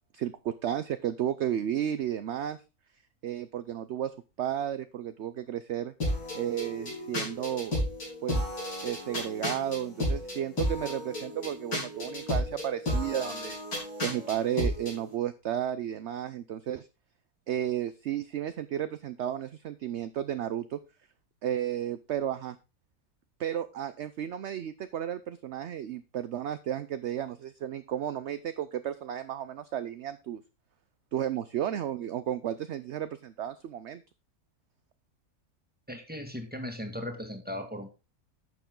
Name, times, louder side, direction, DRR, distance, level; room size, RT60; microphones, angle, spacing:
voice 1, 0.1-2.6 3.2-5.9 6.3-7.7 8.2-8.4 8.8-13.6 14.0-16.9 17.5-20.8 21.4-22.6 23.4-30.4 31.1-34.0, right 10 dB, 60° right, 13 dB, 0.8 m, -33 dB
sound 1, 6.0-15.0, left 1 dB, 90° left, 4.5 m, -33 dB
voice 2, 35.9-37.9, left 1 dB, 5° right, 4 dB, 1.7 m, -37 dB
10.5 x 7.0 x 3.8 m, 0.29 s
omnidirectional pair, 1.6 m